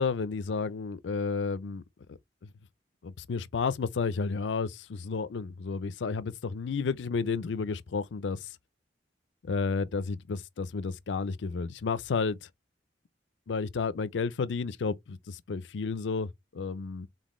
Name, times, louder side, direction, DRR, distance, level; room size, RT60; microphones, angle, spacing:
voice 1, 0.0-1.8 3.0-8.5 9.5-12.4 13.5-17.1, left 4 dB, 75° left, 0.5 m, -31 dB
4.1 x 3.8 x 3.1 m
head